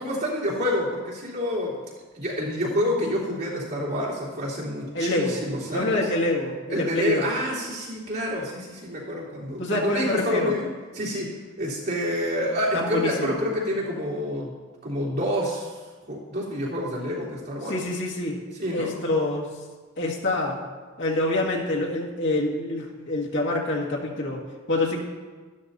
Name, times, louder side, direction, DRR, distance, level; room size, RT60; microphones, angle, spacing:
voice 1, 0.0-1.8 2.1-6.0 6.7-14.5 14.8-15.8 16.1-17.7 18.6-18.9, equal, 50° right, -7 dB, 3.4 m, -28 dB
voice 2, 4.9-5.4 5.7-7.3 9.6-10.5 12.7-13.4 17.7-18.4 18.7-19.5 20.0-20.6 21.0-24.4 24.7-25.0, left 2 dB, 60° left, -2 dB, 2.0 m, -26 dB
12.5 x 12.5 x 2.8 m, 1.4 s
head